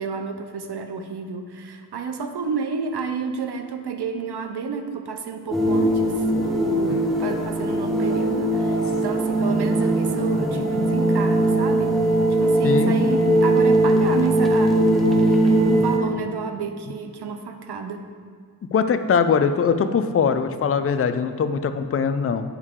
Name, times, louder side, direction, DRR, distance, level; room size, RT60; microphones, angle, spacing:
voice 1, 0.0-12.0 12.3-18.1, right 5 dB, 85° right, 6 dB, 0.7 m, -30 dB
sound 1, 5.5-16.0, right 1 dB, ahead, 0.9 m, -20 dB
voice 2, 6.9-7.3 12.6-12.9 18.7-22.4, left 6 dB, 35° left, 9 dB, 0.4 m, -22 dB
8.0 x 5.4 x 3.7 m, 2.1 s
wide cardioid pair, 85°, 39 cm